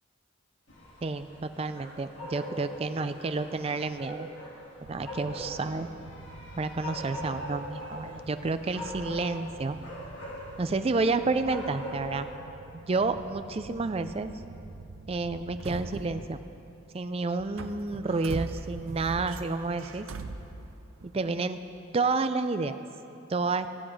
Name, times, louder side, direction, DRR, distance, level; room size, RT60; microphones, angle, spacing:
sound 1, 0.7-12.3, equal, 60° left, 2.3 m, -42 dB
voice 1, 1.0-4.3 4.8-5.9 6.6-9.8 10.6-12.3 12.7-14.3 15.1-16.4 16.9-20.1 21.1-21.6 21.9-22.8 23.3-23.7, right 3 dB, 30° right, 10 dB, 0.4 m, -30 dB
sound 2, 4.8-16.9 17.3-21.2, right 3 dB, 75° right, 0.6 m, -44 dB
16.0 x 7.9 x 4.9 m, 2.9 s
head